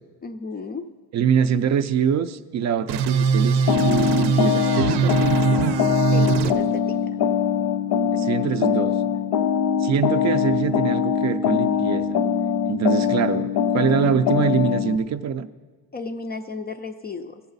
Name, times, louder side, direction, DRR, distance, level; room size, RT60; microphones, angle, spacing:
voice 1, 0.2-0.9 6.1-7.2 15.9-17.4, left 4 dB, 25° left, 8 dB, 0.3 m, -34 dB
voice 2, 1.1-5.6 8.1-8.9 9.8-12.2 12.7-15.5, right 8 dB, 45° right, 11 dB, 0.4 m, -24 dB
sound 1, 2.9-6.5, right 5 dB, 80° right, 0.7 m, -21 dB
sound 2, 3.7-15.0, left 7 dB, 80° left, 0.7 m, -22 dB
17.5 x 7.0 x 4.0 m, 1.4 s
cardioid pair, 155°, 40 cm